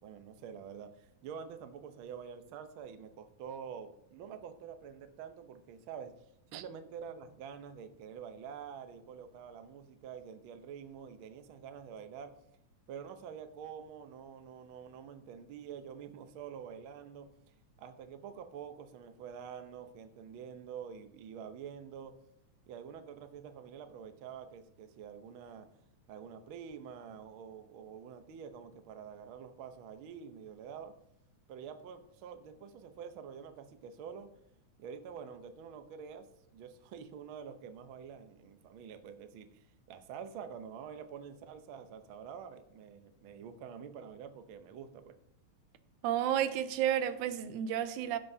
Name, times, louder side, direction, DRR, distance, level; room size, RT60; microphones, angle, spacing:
voice 1, 0.0-6.1 6.5-12.4 12.9-17.3 17.8-22.2 22.7-25.7 26.1-30.9 31.5-34.3 34.8-45.1, right 7 dB, 70° right, 1.2 m, -47 dB
voice 2, 46.0-48.2, right 10 dB, 85° right, 2.1 m, -31 dB
16.0 x 7.5 x 2.7 m
omnidirectional pair, 3.4 m